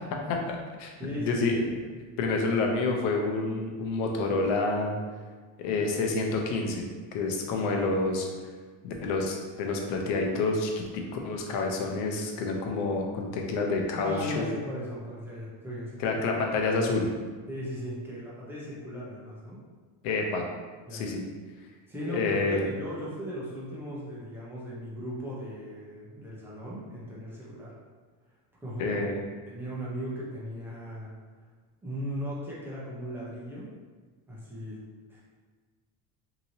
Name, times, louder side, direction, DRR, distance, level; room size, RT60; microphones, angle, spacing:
voice 1, 0.5-1.6 2.2-4.9 5.6-6.9 7.1-8.3 8.8-14.4 16.0-17.1 20.0-20.4 20.9-21.2 22.1-22.6 28.8-29.2, left 3 dB, 80° left, 2 dB, 0.7 m, -28 dB
voice 2, 1.0-1.6 13.9-16.2 17.5-19.6 20.9-21.1 21.9-27.7 28.6-29.0 29.5-31.1 31.8-33.7 34.3-34.8 35.1-35.2, equal, 5° right, -7 dB, 0.6 m, -37 dB
2.9 x 2.8 x 2.7 m, 1.5 s
cardioid pair, 145°, 43 cm